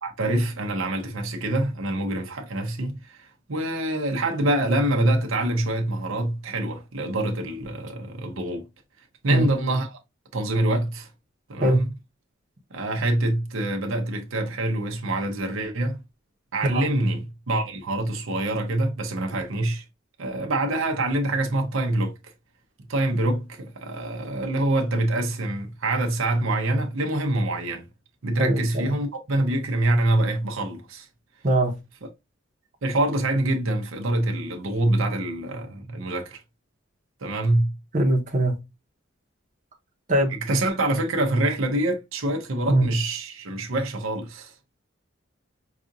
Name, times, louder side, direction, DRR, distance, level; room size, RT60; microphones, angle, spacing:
voice 1, 0.0-8.6 9.2-9.9 10.3-11.1 11.5-11.9 12.7-16.0 16.5-19.8 20.2-22.2 22.9-27.8 28.2-31.1 32.8-36.4 37.2-37.8 40.5-44.5, right 1 dB, 90° right, 0.8 m, -25 dB
voice 2, 28.4-28.9 31.4-31.7 37.9-38.5 40.1-40.3 42.7-42.8, right 1 dB, 40° right, 0.9 m, -21 dB
4.8 x 2.5 x 2.6 m
head